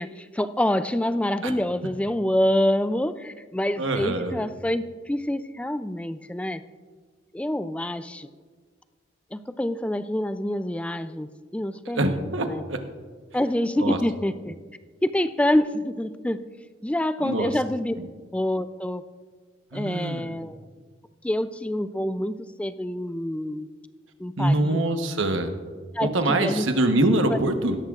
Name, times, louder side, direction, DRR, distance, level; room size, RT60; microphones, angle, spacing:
voice 1, 0.0-6.6 7.3-8.3 9.3-12.6 13.3-14.5 15.0-16.5 16.8-18.0 18.3-19.0 19.7-20.6 21.2-23.7 24.2-24.8 25.9-26.7 27.3-27.4, left 1 dB, 5° left, 12 dB, 0.3 m, -26 dB
voice 2, 3.8-4.4 11.9-12.8 13.8-14.0 17.2-17.5 18.0-18.1 19.7-20.3 24.4-25.5 26.0-27.8, right 1 dB, 85° right, 6 dB, 1.1 m, -24 dB
17.0 x 13.5 x 2.5 m, 1.5 s
head